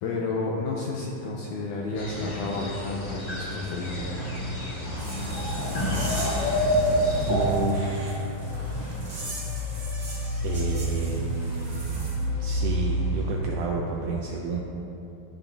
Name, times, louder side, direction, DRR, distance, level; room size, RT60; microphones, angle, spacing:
voice 1, 0.0-4.4, left 3 dB, 85° left, -2 dB, 1.8 m, -31 dB
sound 1, 2.0-7.5, equal, 65° left, 1.0 m, -29 dB
sound 2, 3.7-13.3, left 1 dB, 45° left, 2.1 m, -30 dB
sound 3, 5.0-12.2, right 2 dB, 30° right, 0.7 m, -41 dB
voice 2, 5.7-6.8 7.3-8.2 10.4-12.1 12.4-14.6, right 4 dB, 85° right, -1 dB, 1.8 m, -31 dB
13.0 x 5.8 x 2.7 m, 2.9 s
omnidirectional pair, 4.2 m